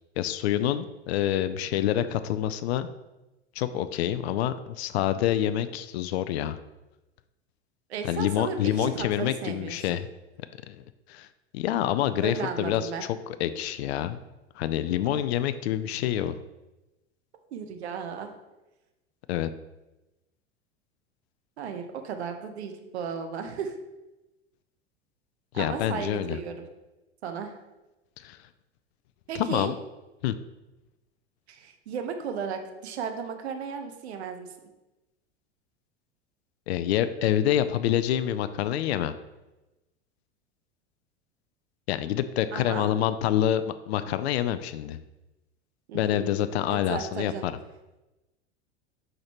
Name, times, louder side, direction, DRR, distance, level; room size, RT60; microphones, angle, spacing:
voice 1, 0.2-2.9 3.6-6.6 8.0-10.1 10.7-10.8 11.1-11.3 11.5-14.2 14.6-16.4 19.3-19.5 25.5-26.4 28.2-28.4 29.3-29.7 30.2-30.4 36.7-39.1 41.9-45.0 45.9-47.5, left 11 dB, 70° left, 12 dB, 0.5 m, -27 dB
voice 2, 7.9-10.0 12.2-13.0 15.0-15.2 17.5-18.3 21.6-23.8 25.5-26.6 27.2-27.6 29.3-29.7 31.5-34.5 42.5-42.9 45.9-46.3 46.7-47.5, right 6 dB, 75° right, 6 dB, 1.0 m, -35 dB
6.3 x 5.2 x 2.9 m, 1.0 s
hypercardioid pair, 90°, 33 cm